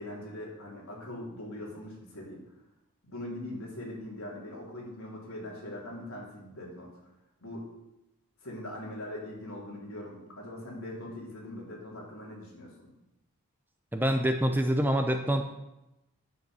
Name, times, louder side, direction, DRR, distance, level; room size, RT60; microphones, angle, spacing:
voice 1, 0.0-2.4 3.0-6.9 7.4-7.7 8.4-12.9, left 1 dB, 70° left, -3 dB, 3.8 m, -41 dB
voice 2, 13.9-15.5, equal, 10° right, 6 dB, 0.6 m, -26 dB
9.9 x 7.5 x 6.3 m, 0.91 s
head